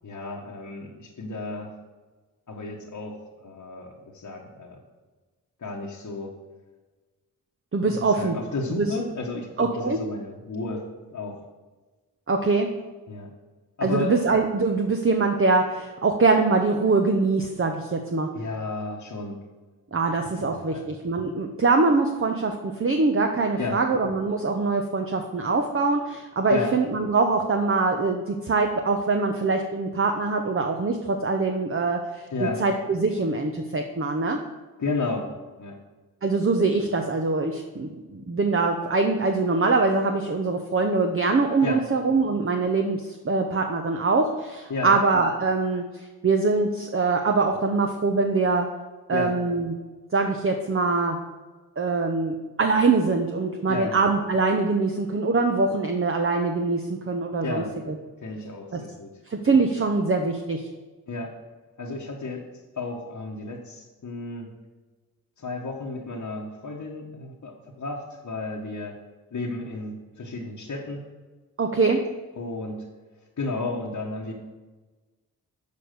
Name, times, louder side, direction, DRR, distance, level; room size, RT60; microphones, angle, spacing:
voice 1, 0.0-1.7 2.5-4.8 5.6-6.4 7.8-10.8 11.1-11.4 13.1-13.3 13.8-14.2 18.3-19.4 20.3-20.9 23.6-23.8 26.5-26.8 32.3-32.6 34.8-35.3 35.6-35.8 41.6-41.8 44.7-45.0 49.1-49.4 53.7-54.0 57.4-57.7 58.2-59.2 61.1-61.3 61.8-62.5 62.7-64.5 65.4-69.0 69.3-71.0 72.4-72.8 73.4-74.3, left 3 dB, 50° left, -2 dB, 1.3 m, -32 dB
voice 2, 7.7-8.4 8.7-8.9 9.6-10.0 12.3-12.7 13.8-18.3 19.9-32.3 32.6-34.4 36.2-45.8 46.2-48.7 49.1-49.7 50.1-51.2 51.8-57.9 58.7-58.8 59.3-60.6 71.6-72.0, right 3 dB, 35° right, 4 dB, 0.9 m, -23 dB
6.7 x 5.1 x 6.6 m, 1.3 s
supercardioid pair, 40°, 39 cm